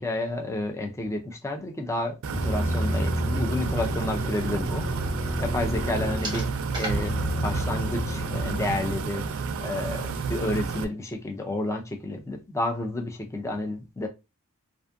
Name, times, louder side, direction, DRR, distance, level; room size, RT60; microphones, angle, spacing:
voice 1, 0.0-4.9 5.4-6.5 6.8-9.3 9.6-14.1, left 2 dB, 15° left, 0.3 m, -30 dB
sound 1, 2.2-10.8, right 5 dB, 65° right, 0.4 m, -31 dB
sound 2, 2.3-6.4 6.9-8.9, equal, 50° left, 1.2 m, -30 dB
sound 3, 5.1-10.8, right 2 dB, 20° right, 0.8 m, -42 dB
2.5 x 2.4 x 2.4 m
head